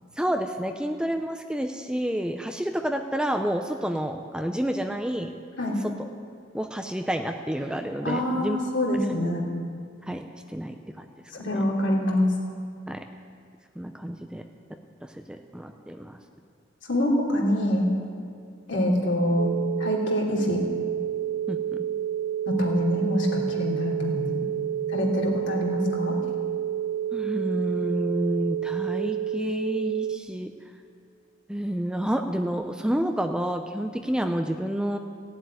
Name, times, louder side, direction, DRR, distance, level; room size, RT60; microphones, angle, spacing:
voice 1, 0.2-5.4 6.5-8.6 10.1-11.0 11.5-11.6 12.9-13.0 13.8-14.4 15.0-16.2 21.5-21.6 27.1-30.5 31.5-35.0, equal, 5° right, 5 dB, 0.6 m, -29 dB
voice 2, 8.0-9.4 11.4-12.3 16.9-17.9 18.7-19.5 19.8-20.6 22.5-24.4 24.9-26.2, left 1 dB, 65° left, -2 dB, 3.0 m, -25 dB
sound 1, 19.4-30.2, right 10 dB, 50° right, 0.5 m, -29 dB
16.0 x 7.7 x 9.6 m, 2.3 s
head